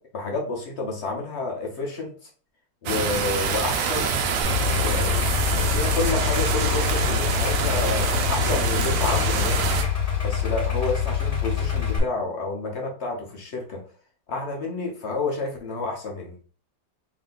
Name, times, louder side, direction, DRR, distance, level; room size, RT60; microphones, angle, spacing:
voice 1, 0.1-2.1 2.8-4.2 4.8-5.2 5.5-9.6 10.2-13.8 14.3-16.3, left 3 dB, 55° left, 1 dB, 0.7 m, -29 dB
sound 1, 2.9-9.8, right 5 dB, 90° right, 1.4 m, -25 dB
Idling, 4.4-12.0, left 8 dB, 25° left, 1.1 m, -25 dB
3.4 x 2.7 x 3.8 m, 0.41 s
omnidirectional pair, 2.0 m